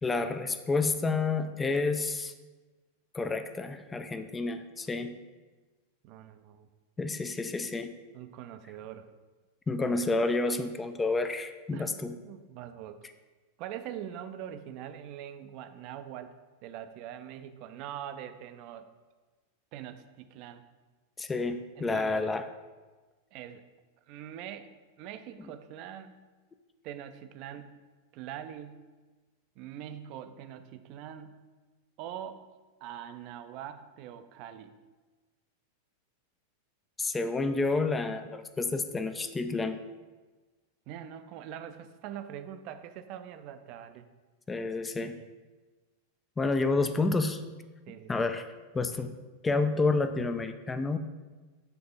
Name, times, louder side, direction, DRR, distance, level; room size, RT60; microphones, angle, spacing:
voice 1, 0.0-2.3 3.1-5.2 7.0-8.0 9.7-12.2 21.2-22.4 37.0-39.8 44.5-45.2 46.4-47.4 48.1-48.5 48.7-49.1 49.4-51.0, left 3 dB, 15° left, 9 dB, 0.4 m, -29 dB
voice 2, 6.0-6.7 8.1-9.1 11.7-11.9 12.2-13.1 13.6-18.9 19.7-20.6 21.8-22.3 23.3-23.6 24.1-24.7 25.0-26.2 26.8-27.8 28.1-28.9 29.6-31.5 32.0-32.4 32.8-34.7 40.9-44.1 45.0-45.3 47.9-48.3, right 10 dB, 40° right, 9 dB, 0.5 m, -43 dB
6.8 x 3.4 x 5.3 m, 1.3 s
figure-of-eight pair, 90°, 0 cm